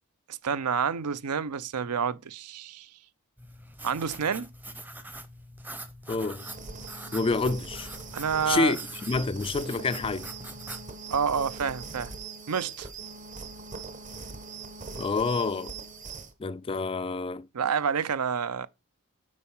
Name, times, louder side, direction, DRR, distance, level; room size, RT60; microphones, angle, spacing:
voice 1, 0.3-2.9 3.8-4.5 8.1-8.7 11.1-12.1 12.5-12.9 17.5-18.7, right 6 dB, 80° right, 0.6 m, -28 dB
sound 1, 3.4-10.9, right 1 dB, 10° right, 0.7 m, -44 dB
voice 2, 6.1-6.5 7.1-7.9 8.5-10.3 15.0-15.7 16.4-17.5, left 3 dB, 25° left, 0.3 m, -28 dB
sound 2, 6.4-16.3, right 4 dB, 35° right, 1.1 m, -42 dB
8.8 x 4.6 x 5.5 m
head